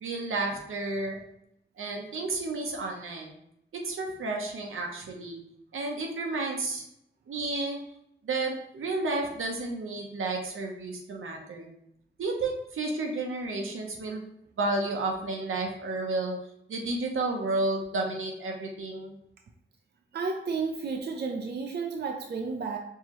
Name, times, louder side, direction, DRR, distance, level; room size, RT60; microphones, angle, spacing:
voice 1, 0.0-1.2 1.8-3.3 3.7-5.4 5.7-6.8 7.3-7.8 8.2-11.7 12.2-14.2 14.6-16.3 16.7-19.2, right 2 dB, 85° right, 1 dB, 0.8 m, -31 dB
voice 2, 20.1-22.8, right 4 dB, 55° right, 2 dB, 0.5 m, -32 dB
4.6 x 2.8 x 3.0 m, 0.76 s
cardioid pair, 65°, 21 cm